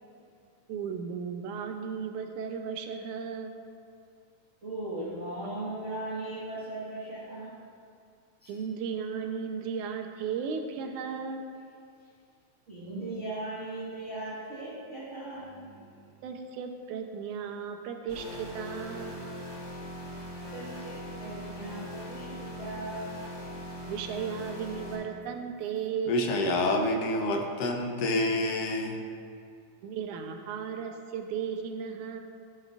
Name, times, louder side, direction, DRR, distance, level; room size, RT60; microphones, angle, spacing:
voice 1, 0.7-3.5 8.5-11.5 16.2-19.1 23.9-26.2 29.8-32.2, right 6 dB, 90° right, 5 dB, 2.2 m, -35 dB
voice 2, 4.6-7.6 8.4-8.6 12.7-16.2 20.5-23.3, right 2 dB, 35° right, -9 dB, 1.2 m, -38 dB
sound 1, 18.1-24.9, left 1 dB, 30° left, 2.5 m, -41 dB
voice 3, 26.1-29.0, left 1 dB, 70° left, 2 dB, 1.6 m, -27 dB
15.0 x 7.7 x 2.5 m, 2.3 s
omnidirectional pair, 3.4 m